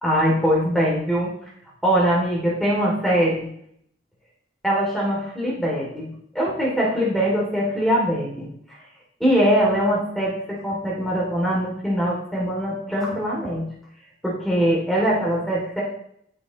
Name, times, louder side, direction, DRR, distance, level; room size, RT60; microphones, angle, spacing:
voice 1, 0.0-1.3 1.8-3.5 4.6-8.5 9.2-13.6 14.2-15.8, equal, ahead, -5 dB, 2.9 m, -22 dB
16.0 x 7.0 x 3.2 m, 0.68 s
head